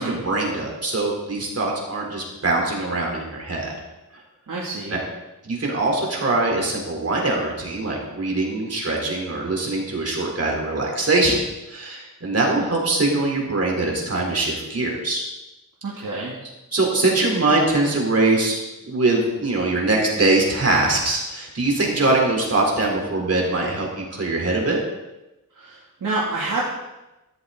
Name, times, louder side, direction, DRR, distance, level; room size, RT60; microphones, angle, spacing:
voice 1, 0.0-3.7 4.9-5.0 5.4-11.4 11.7-15.2 16.0-16.1 16.7-18.6 18.8-24.8, right 2 dB, 45° right, -1 dB, 3.9 m, -22 dB
voice 2, 4.5-5.0 15.8-16.3 25.5-26.6, right 3 dB, 65° right, -5 dB, 2.8 m, -28 dB
16.0 x 14.0 x 4.1 m, 0.99 s
wide cardioid pair, 150°, 34 cm